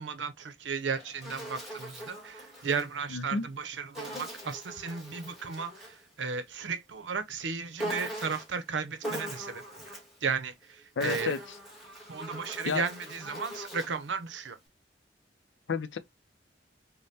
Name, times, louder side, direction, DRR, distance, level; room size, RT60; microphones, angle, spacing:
voice 1, 0.0-5.7 6.2-9.8 10.2-10.5 11.0-11.3 12.1-14.6, right 5 dB, 85° right, 0.6 m, -34 dB
Insect, 0.7-2.9 3.9-6.0 7.8-8.6 9.0-10.2 10.8-14.0, equal, ahead, 1.6 m, -41 dB
voice 2, 3.1-3.5 11.0-11.6 12.6-12.8 15.7-16.0, left 4 dB, 85° left, 0.5 m, -31 dB
5.2 x 2.1 x 2.6 m
head